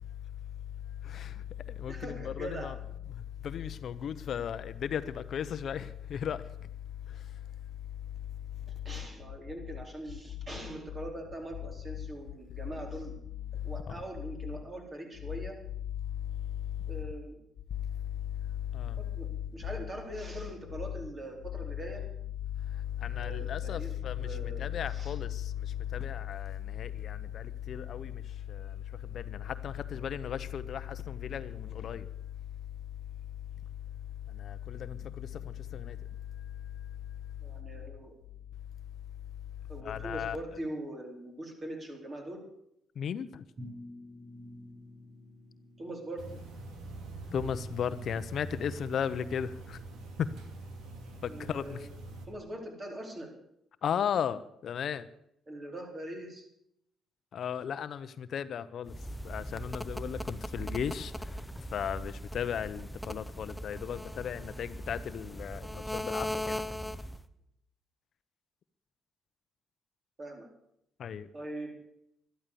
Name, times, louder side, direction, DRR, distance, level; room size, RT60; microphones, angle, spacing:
voice 1, 1.0-2.7 3.1-6.7 7.1-7.4 13.9-14.0 16.4-16.9 17.7-17.9 18.4-19.0 22.6-32.1 34.3-36.0 36.4-36.5 39.8-40.4 43.0-43.4 47.3-49.8 50.2-50.3 51.2-51.9 53.8-55.1 57.3-58.9 59.2-61.3 61.7-66.6 71.0-71.3, left 8 dB, 60° left, 13 dB, 0.7 m, -36 dB
voice 2, 1.9-2.7 8.7-13.2 13.6-15.6 16.9-17.4 19.0-22.1 23.1-25.1 37.4-38.1 39.7-42.5 45.8-46.4 51.2-51.9 52.3-53.3 55.5-56.5 66.8-66.9 70.2-70.5 71.3-71.7, right 1 dB, 35° right, 3 dB, 4.2 m, -42 dB
sound 1, 43.6-46.7, left 1 dB, 55° right, 7.5 m, -49 dB
sound 2, 46.2-52.3, right 2 dB, 80° right, 2.7 m, -44 dB
sound 3, 58.9-67.3, equal, 5° left, 0.9 m, -39 dB
12.5 x 12.5 x 6.9 m, 0.75 s
cardioid pair, 90°, 0 cm